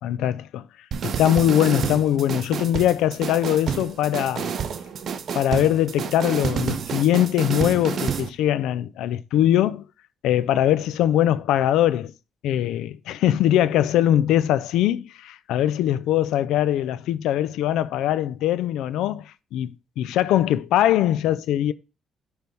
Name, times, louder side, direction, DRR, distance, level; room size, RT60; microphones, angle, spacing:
voice 1, 0.0-0.6 1.0-4.5 5.3-9.8 10.2-12.1 12.4-21.7, left 12 dB, 90° left, 0.4 m, -22 dB
sound 1, 0.9-8.3, right 7 dB, 60° right, 0.8 m, -29 dB
9.3 x 3.4 x 5.3 m
cardioid pair, 90°, 0 cm